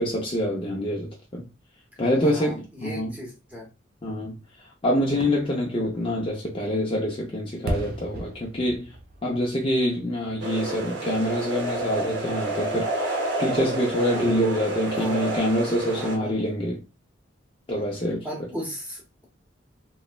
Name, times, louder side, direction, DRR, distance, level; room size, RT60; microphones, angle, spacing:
voice 1, 0.0-1.5 2.0-3.1 4.0-8.9 9.2-16.8 17.7-18.3, equal, 25° left, 0.4 m, -26 dB
voice 2, 2.2-3.7 14.9-15.3 15.8-16.5 18.2-19.2, equal, 10° right, 0.8 m, -37 dB
Fireworks, 5.1-10.9 11.3-11.4, right 1 dB, 50° right, 0.4 m, -38 dB
sound 1, 10.4-16.2, right 2 dB, 65° right, 0.7 m, -29 dB
3.0 x 2.1 x 2.2 m
head